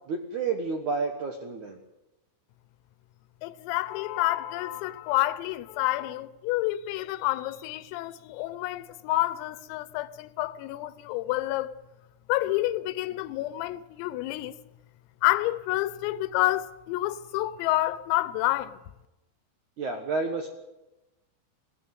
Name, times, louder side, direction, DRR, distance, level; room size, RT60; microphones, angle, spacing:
voice 1, 0.1-1.8 19.8-20.5, right 4 dB, 75° right, 1.7 m, -30 dB
voice 2, 3.4-11.7 12.3-14.5 15.2-18.8, left 16 dB, 85° left, 3.6 m, -29 dB
21.0 x 18.0 x 9.4 m
omnidirectional pair, 6.0 m